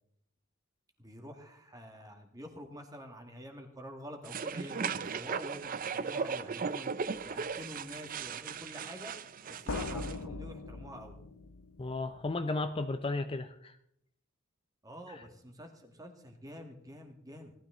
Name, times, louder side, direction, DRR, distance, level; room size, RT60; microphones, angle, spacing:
voice 1, 1.0-6.9 7.2-9.1 9.5-11.1 14.8-17.5, equal, 15° right, 4 dB, 1.9 m, -47 dB
sound 1, 4.2-10.2, right 5 dB, 40° right, 0.5 m, -37 dB
sound 2, 7.0-7.3 9.7-12.3, left 3 dB, 80° left, 0.7 m, -41 dB
voice 2, 11.8-13.8 15.1-15.2, left 2 dB, 25° left, 9 dB, 0.5 m, -34 dB
18.0 x 12.5 x 3.8 m, 0.73 s
head